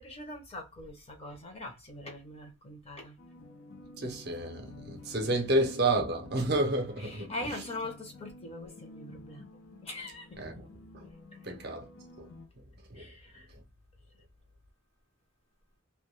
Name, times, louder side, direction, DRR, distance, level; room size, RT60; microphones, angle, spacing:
voice 1, 0.0-3.2 7.1-9.4 9.8-10.3 13.0-13.4, left 2 dB, 30° left, 0.6 m, -42 dB
sound 1, 3.2-12.5, left 2 dB, 75° left, 0.6 m, -51 dB
voice 2, 4.0-7.6 10.4-10.7 10.9-11.0 11.4-11.9 12.2-12.3 12.9-13.1, right 2 dB, 50° right, 0.6 m, -30 dB
2.2 x 2.1 x 3.0 m
head